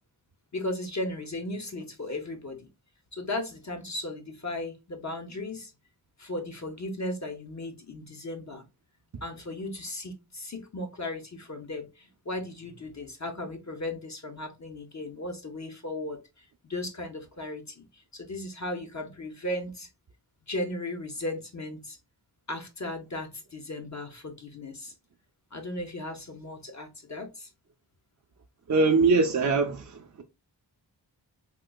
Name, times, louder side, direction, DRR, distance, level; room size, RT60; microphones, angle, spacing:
voice 1, 0.5-2.7 3.1-5.7 6.2-8.6 9.2-19.9 20.5-22.0 22.5-24.9 25.5-27.5, left 1 dB, 40° left, 0.6 m, -36 dB
voice 2, 28.7-30.2, right 4 dB, 45° right, 0.4 m, -23 dB
3.7 x 2.8 x 2.2 m
wide cardioid pair, 65°, 42 cm